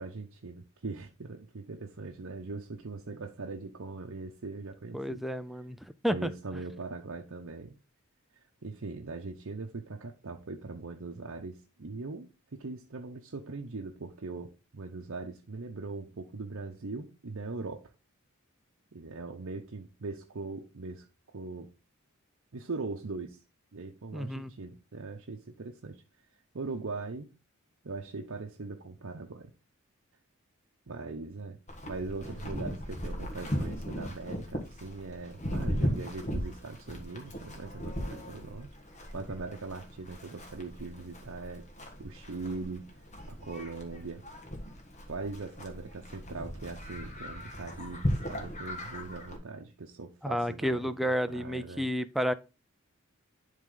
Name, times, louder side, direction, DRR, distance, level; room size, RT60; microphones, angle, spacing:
voice 1, 0.0-5.2 6.1-7.8 8.6-17.9 18.9-21.1 21.3-21.7 22.5-23.4 23.7-26.0 26.5-27.3 27.8-29.5 30.9-31.6 31.8-38.7 39.1-41.6 42.0-42.9 43.3-44.2 45.1-51.9, right 3 dB, 65° right, 0.8 m, -40 dB
voice 2, 4.9-6.3 24.1-24.5 50.2-52.3, equal, ahead, 0.4 m, -31 dB
Livestock farm animals working animals, 31.7-49.4, equal, 35° left, 1.7 m, -37 dB
11.0 x 3.6 x 3.8 m
head